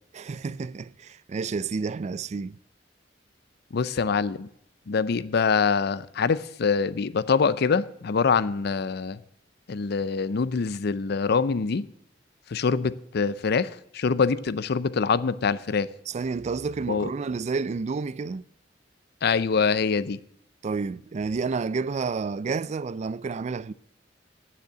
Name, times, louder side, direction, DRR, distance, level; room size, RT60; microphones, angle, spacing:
voice 1, 0.1-2.6 16.1-18.5 20.6-23.7, right 4 dB, 40° right, 0.3 m, -30 dB
voice 2, 3.7-4.5 4.9-9.2 9.7-11.9 12.5-15.9 16.9-17.1 19.2-20.2, left 5 dB, 60° left, 0.5 m, -24 dB
9.4 x 7.4 x 9.2 m
head